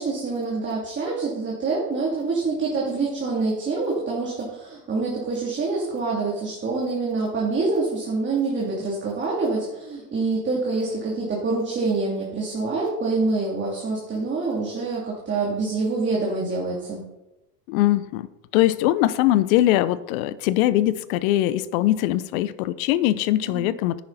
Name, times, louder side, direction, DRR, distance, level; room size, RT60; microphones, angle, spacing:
voice 1, 0.0-17.0 23.5-23.7, right 3 dB, 25° right, -4 dB, 2.8 m, -26 dB
voice 2, 17.7-18.3 18.5-24.0, left 14 dB, 60° left, 17 dB, 0.8 m, -21 dB
10.5 x 9.6 x 4.1 m, 0.94 s
hypercardioid pair, 110°, 48 cm